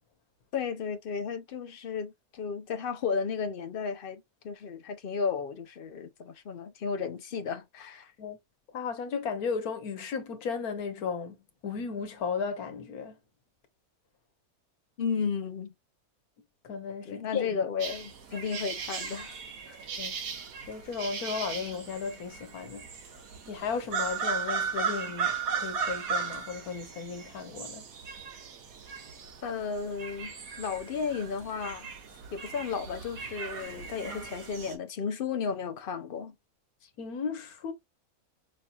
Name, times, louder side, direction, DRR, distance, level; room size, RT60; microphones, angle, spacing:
voice 1, 0.5-8.1 15.0-15.7 17.1-19.4 19.7-19.8 29.4-31.9 32.3-36.3, left 6 dB, 55° left, 0.6 m, -34 dB
voice 2, 8.7-11.4 11.6-13.2 16.6-17.6 20.0-20.1 20.7-22.9 23.5-27.8 37.0-37.7, left 5 dB, 80° left, 1.4 m, -35 dB
sound 1, 17.8-34.7, right 6 dB, 70° right, 1.5 m, -37 dB
5.4 x 2.8 x 2.3 m
omnidirectional pair, 1.6 m